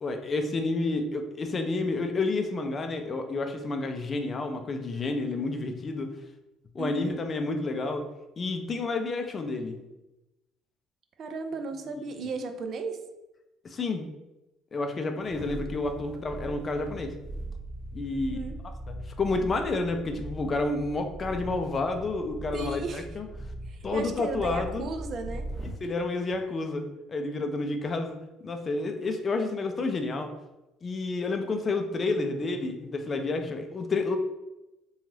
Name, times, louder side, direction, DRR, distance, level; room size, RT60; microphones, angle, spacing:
voice 1, 0.0-6.1 6.7-8.1 8.4-9.8 11.9-12.3 13.6-14.1 14.7-17.1 17.9-18.4 18.9-23.3 23.8-24.9 25.8-26.8 27.1-28.2 28.4-30.3 30.8-34.2, left 3 dB, 40° left, 6 dB, 0.4 m, -30 dB
voice 2, 6.8-7.2 11.2-13.0 16.1-16.2 18.1-18.6 22.5-23.1 23.7-25.5, right 3 dB, 55° right, 6 dB, 0.4 m, -35 dB
sound 1, 15.2-25.9 26.3-26.4, right 1 dB, 20° right, 0.7 m, -40 dB
2.5 x 2.3 x 3.2 m, 0.98 s
hypercardioid pair, 60°, 0 cm